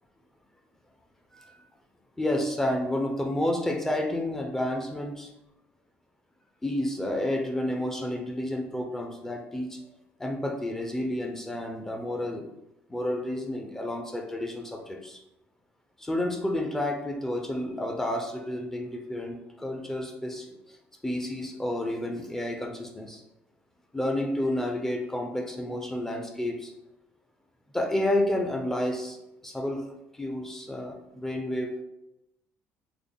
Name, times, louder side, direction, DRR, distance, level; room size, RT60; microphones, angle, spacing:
voice 1, 1.3-1.6 2.2-5.3 6.6-9.8 10.2-12.5 12.9-15.2 16.0-20.8 21.0-23.2 23.9-26.7 27.7-29.2 29.4-29.8 30.1-31.8, left 1 dB, 10° left, 3 dB, 0.3 m, -30 dB
3.6 x 2.0 x 3.4 m, 0.88 s
cardioid pair, 140°, 5 cm